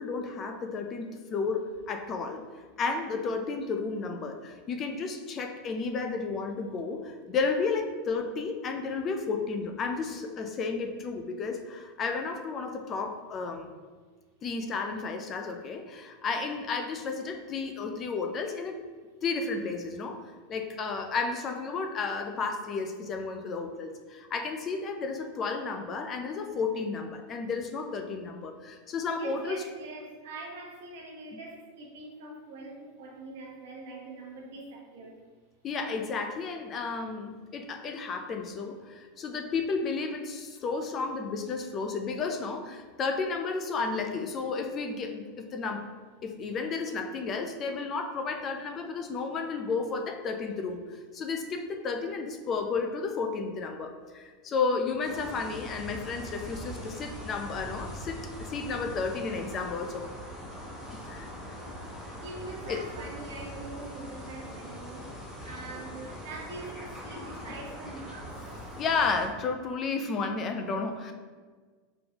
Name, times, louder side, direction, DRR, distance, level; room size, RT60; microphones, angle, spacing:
voice 1, 0.0-2.4 2.8-13.7 14.4-18.8 19.2-29.6 31.3-31.4 35.6-45.9 46.2-60.1 60.9-61.6 62.0-62.1 62.7-62.8 65.4-65.5 68.8-71.1, left 4 dB, 25° left, 5 dB, 0.3 m, -32 dB
voice 2, 16.3-16.7 29.1-35.2 62.2-68.4, right 2 dB, 75° right, 0 dB, 1.0 m, -43 dB
sound 1, 55.0-69.3, equal, 10° left, 1.0 m, -42 dB
3.8 x 3.7 x 2.9 m, 1.5 s
supercardioid pair, 160°, 0 cm